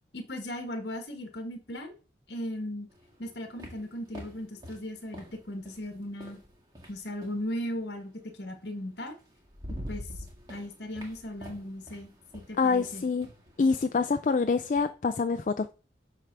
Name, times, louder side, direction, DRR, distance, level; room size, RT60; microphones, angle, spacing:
voice 1, 0.1-1.9 2.3-2.9 3.2-6.4 6.9-9.2 9.9-10.1 10.5-13.1, left 1 dB, 65° left, 1.5 m, -37 dB
sound 1, 2.9-7.5 8.7-8.8 9.2-14.9, equal, 20° right, 1.8 m, -46 dB
voice 2, 12.6-13.3 13.6-15.7, left 4 dB, 40° left, 0.3 m, -26 dB
8.2 x 3.4 x 5.9 m
head